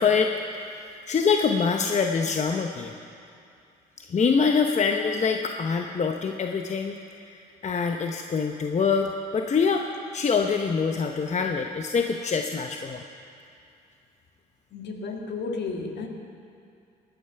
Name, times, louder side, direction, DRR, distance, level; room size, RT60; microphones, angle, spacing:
voice 1, 0.0-3.0 4.0-7.0 7.2-9.8 10.1-13.0, left 5 dB, 35° left, 4 dB, 0.9 m, -25 dB
voice 2, 14.7-16.1, left 4 dB, 60° left, 2 dB, 1.9 m, -32 dB
17.0 x 10.5 x 5.8 m, 2.5 s
supercardioid pair, 70°, 19 cm